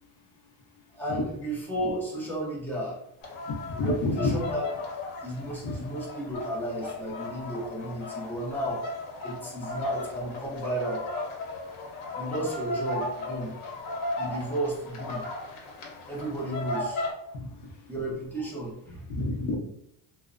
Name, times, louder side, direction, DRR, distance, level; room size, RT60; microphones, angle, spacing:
voice 1, 0.9-3.0 3.7-4.7 5.2-8.8 9.2-11.0 12.1-13.5 14.2-15.2 16.1-17.1 17.9-19.1, right 1 dB, 5° left, -6 dB, 0.4 m, -33 dB
sound 1, 3.2-17.1, left 2 dB, 85° left, 0.8 m, -36 dB
voice 2, 3.5-4.3 5.6-5.7 17.3-17.5 19.2-19.5, left 2 dB, 60° left, -1 dB, 0.7 m, -29 dB
2.7 x 2.0 x 2.4 m, 0.76 s
cardioid pair, 160°, 47 cm